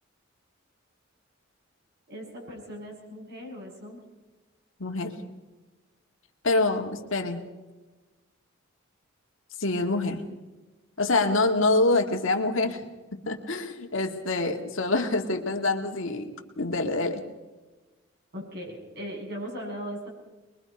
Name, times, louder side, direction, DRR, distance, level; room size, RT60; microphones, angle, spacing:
voice 1, 2.1-4.0 18.3-20.1, equal, 55° right, -1 dB, 7.1 m, -38 dB
voice 2, 4.8-5.1 6.4-7.4 9.6-10.2 11.0-12.8 13.1-16.3 16.6-17.2, left 2 dB, 70° left, 4 dB, 2.0 m, -26 dB
24.0 x 22.0 x 5.3 m, 1.2 s
head